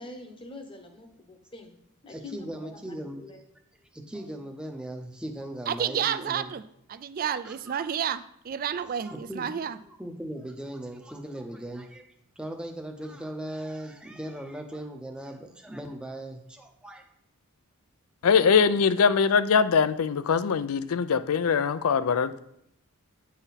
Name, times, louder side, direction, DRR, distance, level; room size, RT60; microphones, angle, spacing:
voice 1, 0.0-1.7 2.0-2.5 3.2-3.4, left 2 dB, 25° left, 0.9 m, -44 dB
voice 2, 2.1-3.2 3.9-6.5 7.4-7.8 9.0-9.5 9.9-12.1 12.4-17.0, right 1 dB, 5° right, 0.6 m, -38 dB
voice 3, 5.7-6.6 6.9-9.8, right 8 dB, 40° right, 0.3 m, -30 dB
voice 4, 18.2-22.4, left 6 dB, 80° left, 0.4 m, -22 dB
8.8 x 4.1 x 4.1 m
head